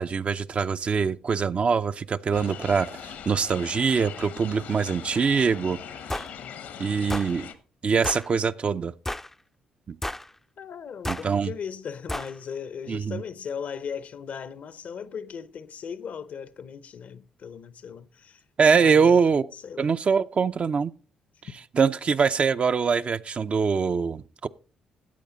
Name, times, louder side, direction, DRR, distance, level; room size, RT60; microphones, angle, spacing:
voice 1, 0.0-2.9 3.3-5.8 6.8-7.5 7.8-8.9 9.9-10.0 11.1-11.5 12.9-13.2 18.6-19.5 19.8-20.9 21.7-24.5, right 5 dB, 45° right, 0.6 m, -23 dB
sound 1, 2.3-7.5, left 8 dB, 75° left, 1.2 m, -40 dB
sound 2, 6.1-6.3 7.1-7.3 8.0-8.3 9.1-9.3 10.0-10.3 11.0-11.3 12.1-12.3, left 1 dB, 10° left, 0.5 m, -31 dB
voice 2, 6.4-7.2 10.6-18.4 18.8-19.2 19.5-19.9, left 7 dB, 60° left, 0.8 m, -38 dB
13.5 x 8.6 x 3.9 m
hypercardioid pair, 50°, 3 cm